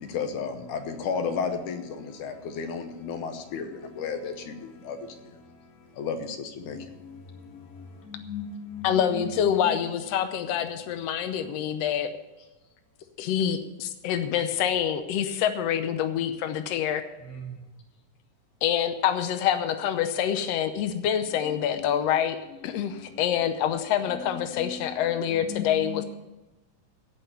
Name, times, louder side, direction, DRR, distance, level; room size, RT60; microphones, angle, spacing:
voice 1, 0.0-5.4 5.9-6.9, left 5 dB, 70° left, 7 dB, 2.4 m, -33 dB
voice 2, 8.1-9.3 9.6-9.8 21.4-21.6 24.3-24.7 25.5-26.0, left 6 dB, 35° left, 1 dB, 1.9 m, -37 dB
voice 3, 8.8-12.1 13.2-17.0 18.6-22.4 22.6-26.0, left 9 dB, 85° left, 8 dB, 1.4 m, -26 dB
16.5 x 5.6 x 8.4 m, 1.0 s
omnidirectional pair, 3.9 m